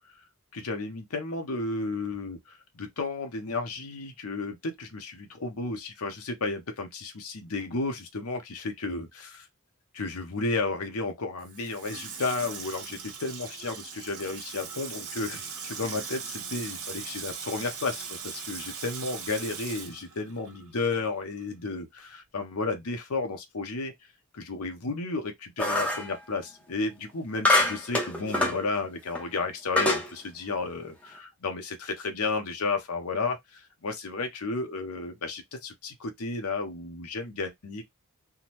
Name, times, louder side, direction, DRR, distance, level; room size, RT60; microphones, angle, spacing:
voice 1, 0.5-2.4 2.7-9.5 9.9-23.9 24.3-37.8, left 3 dB, 75° left, 0.8 m, -33 dB
Water tap faucet / Sink (filling or washing), 11.4-21.1 21.4-21.5, right 6 dB, 70° right, 1.0 m, -40 dB
sound 1, 25.6-26.1 27.5-28.6 29.1-29.2 29.8-30.1, left 2 dB, 5° left, 0.6 m, -24 dB
3.6 x 2.1 x 2.9 m
head